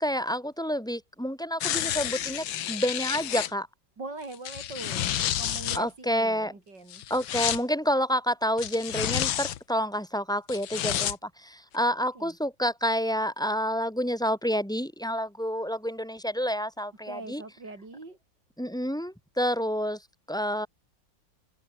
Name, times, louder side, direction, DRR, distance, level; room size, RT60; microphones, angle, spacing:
voice 1, 0.0-3.7 5.7-6.5 7.1-17.4 18.6-20.0 20.3-20.7, equal, ahead, 6.1 m, -29 dB
sound 1, 1.6-3.5 4.3-5.8 6.9-7.6 8.6-9.6 10.5-11.1 11.7-11.8, left 11 dB, 85° left, 1.8 m, -30 dB
voice 2, 4.0-7.0 12.2-12.4 17.1-18.2, right 3 dB, 65° right, 5.7 m, -42 dB
omnidirectional pair, 2.1 m